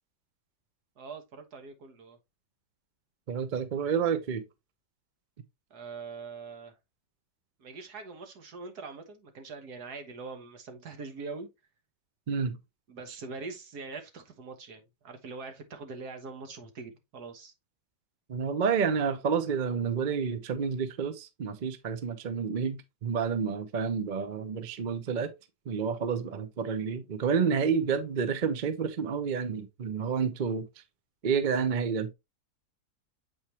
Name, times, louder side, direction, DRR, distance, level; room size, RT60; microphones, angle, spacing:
voice 1, 1.0-2.2 5.7-6.8 7.6-11.5 12.9-17.5, right 4 dB, 70° right, 1.8 m, -43 dB
voice 2, 3.3-4.4 12.3-12.6 18.3-25.3 25.7-30.7 31.2-32.1, right 6 dB, 50° right, 0.6 m, -29 dB
7.9 x 4.5 x 2.9 m
omnidirectional pair, 1.8 m